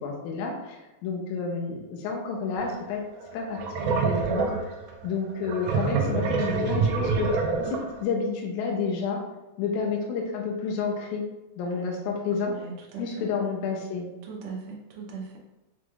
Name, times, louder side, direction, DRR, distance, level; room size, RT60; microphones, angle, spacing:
voice 1, 0.0-3.0 3.3-3.6 3.9-4.5 5.0-7.3 7.6-9.2 9.6-11.2 11.6-12.5 13.0-14.1, left 5 dB, 80° left, 0 dB, 2.0 m, -30 dB
sound 1, 2.6-2.7 3.2-8.0, right 4 dB, 90° right, 1.4 m, -26 dB
voice 2, 12.3-13.3 14.2-15.4, right 4 dB, 70° right, -2 dB, 1.6 m, -39 dB
6.1 x 3.0 x 2.4 m, 1.1 s
omnidirectional pair, 3.6 m